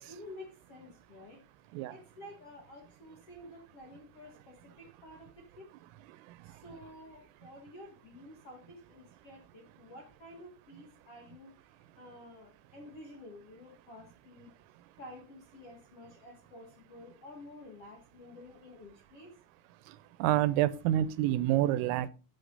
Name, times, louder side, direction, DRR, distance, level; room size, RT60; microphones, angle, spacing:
voice 1, 0.1-1.4 1.9-5.7 6.4-14.5 15.0-19.3, left 1 dB, 60° left, 1.6 m, -51 dB
voice 2, 20.2-22.1, right 13 dB, 85° right, 3.3 m, -27 dB
11.5 x 8.9 x 4.0 m
omnidirectional pair, 5.8 m